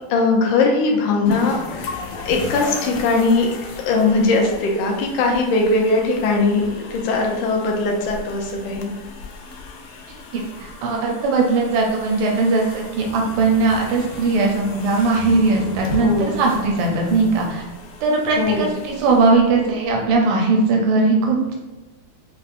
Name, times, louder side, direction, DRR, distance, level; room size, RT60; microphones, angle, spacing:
voice 1, 0.1-3.5 3.9-8.9 16.0-16.4 18.4-18.7, left 3 dB, 70° left, 0 dB, 1.2 m, -20 dB
sound 1, 1.3-20.1, left 5 dB, 90° left, 1.5 m, -37 dB
voice 2, 10.3-17.6 18.0-21.5, right 3 dB, 85° right, 0 dB, 1.5 m, -19 dB
sound 2, 12.6-17.6, equal, 55° right, 0.6 m, -38 dB
5.3 x 2.1 x 2.5 m, 1.1 s
omnidirectional pair, 2.4 m